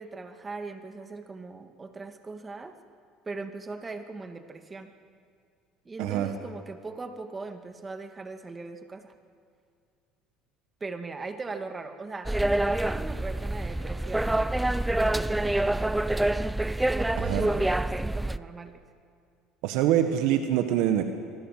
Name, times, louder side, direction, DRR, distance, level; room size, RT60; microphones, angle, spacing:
voice 1, 0.0-2.7 3.3-4.9 5.9-9.1 10.8-14.3 14.8-16.0 16.9-18.8, right 3 dB, 25° right, 6 dB, 2.2 m, -39 dB
voice 2, 6.0-6.3 17.3-17.5 19.6-21.0, right 11 dB, 75° right, 7 dB, 1.6 m, -24 dB
sound 1, 12.3-18.4, right 1 dB, 10° right, 0.6 m, -26 dB
26.0 x 20.0 x 7.6 m, 2.4 s
supercardioid pair, 90°, 0 cm